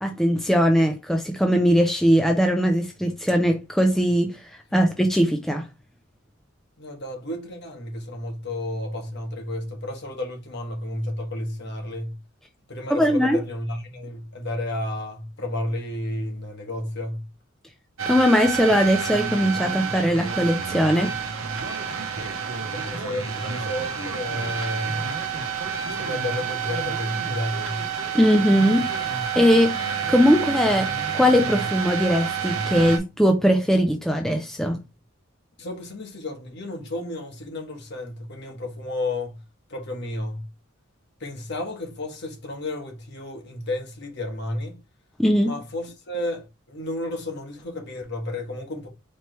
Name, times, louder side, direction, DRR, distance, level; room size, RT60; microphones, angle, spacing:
voice 1, 0.0-4.4 4.7-5.7 12.9-13.4 18.1-21.1 28.1-28.9 29.4-29.7 30.1-30.9 31.1-34.8 45.2-45.6, equal, ahead, 0.4 m, -20 dB
voice 2, 6.8-12.2 12.7-17.3 22.5-25.1 25.9-27.8 35.6-39.4 39.7-40.5 41.2-44.8 45.4-48.9, left 1 dB, 55° left, 1.2 m, -32 dB
sound 1, 18.0-33.0, right 6 dB, 70° right, 0.8 m, -29 dB
4.4 x 3.2 x 3.0 m
head